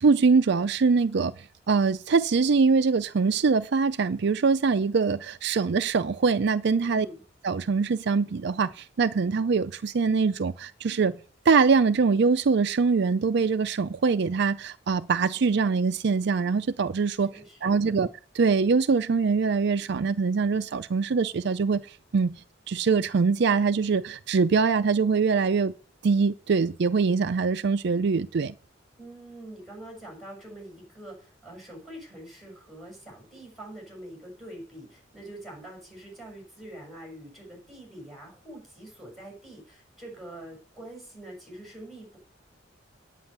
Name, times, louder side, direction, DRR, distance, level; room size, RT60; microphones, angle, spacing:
voice 1, 0.0-1.3 1.7-7.1 7.4-11.2 11.5-17.3 17.6-18.1 18.4-22.4 22.7-25.7 26.0-28.5, right 5 dB, 60° right, 0.5 m, -23 dB
voice 2, 6.8-7.2 17.3-18.1 29.0-42.2, right 1 dB, ahead, 6.6 m, -44 dB
9.6 x 9.0 x 6.7 m
head